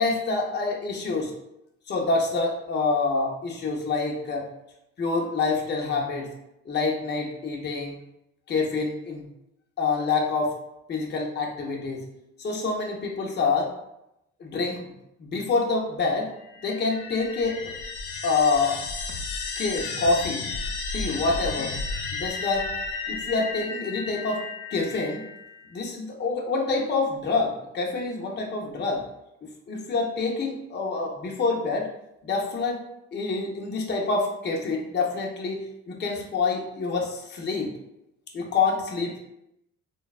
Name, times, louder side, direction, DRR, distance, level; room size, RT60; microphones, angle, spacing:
voice 1, 0.0-1.3 1.9-4.5 5.0-6.3 6.7-8.0 8.5-9.3 9.8-10.5 10.9-12.0 12.4-13.7 14.4-14.9 15.2-16.3 16.6-17.7 18.2-18.8 19.6-20.4 20.9-21.7 22.1-22.7 23.1-24.4 24.7-25.2 25.7-29.0 29.7-31.9 32.2-32.8 33.1-37.7 38.3-39.2, left 4 dB, 35° left, -1 dB, 0.6 m, -26 dB
sound 1, 16.4-25.7, left 4 dB, 80° left, 0.5 m, -33 dB
3.2 x 2.2 x 2.3 m, 0.84 s
cardioid pair, 90°, 30 cm